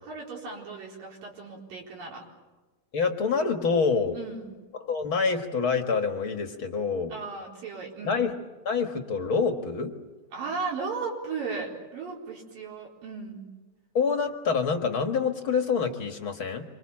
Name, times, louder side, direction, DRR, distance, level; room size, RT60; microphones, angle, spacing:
voice 1, 0.0-2.2 4.1-4.5 7.1-8.2 10.3-13.4, right 4 dB, 70° right, -1 dB, 5.9 m, -36 dB
voice 2, 2.9-4.2 4.8-7.1 8.0-8.3 8.6-9.9 13.9-16.6, left 5 dB, 45° left, 6 dB, 1.8 m, -26 dB
27.0 x 24.5 x 7.5 m, 1.2 s
omnidirectional pair, 4.1 m